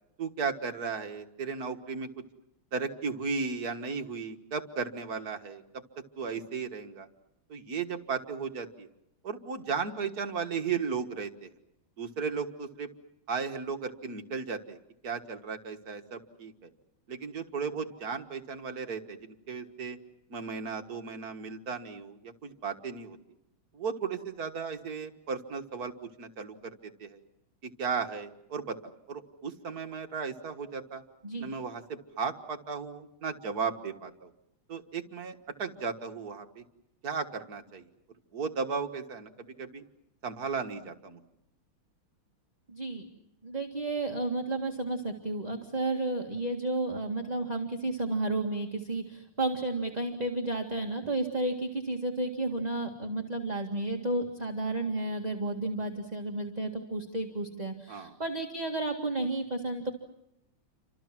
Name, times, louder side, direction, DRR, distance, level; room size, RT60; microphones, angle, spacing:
voice 1, 0.2-2.1 2.7-5.6 6.2-7.1 7.5-8.9 9.2-11.5 12.0-12.9 13.3-14.8 15.0-16.7 17.1-20.0 20.3-23.2 23.7-25.9 26.2-27.2 27.6-31.0 31.4-34.3 34.7-36.6 37.0-37.9 38.3-39.8 40.2-41.2 57.9-58.2, right 5 dB, 50° right, 6 dB, 1.9 m, -35 dB
voice 2, 42.7-43.0 43.4-59.9, right 2 dB, 20° right, 2 dB, 2.0 m, -32 dB
30.0 x 26.0 x 6.1 m, 0.82 s
omnidirectional pair, 2.3 m